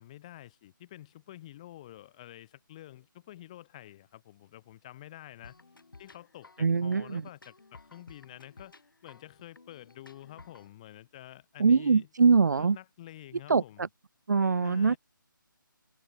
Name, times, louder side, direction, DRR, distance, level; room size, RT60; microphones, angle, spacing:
voice 1, 0.0-5.6 6.0-12.1 12.6-13.9 14.6-15.0, left 14 dB, 20° left, 4.5 m, -49 dB
sound 1, 5.4-10.7, left 3 dB, 75° left, 5.6 m, -55 dB
voice 2, 6.6-7.2 11.6-12.8 13.5-13.9 14.3-14.9, right 5 dB, 55° right, 0.6 m, -23 dB
hypercardioid pair, 175°, 11 cm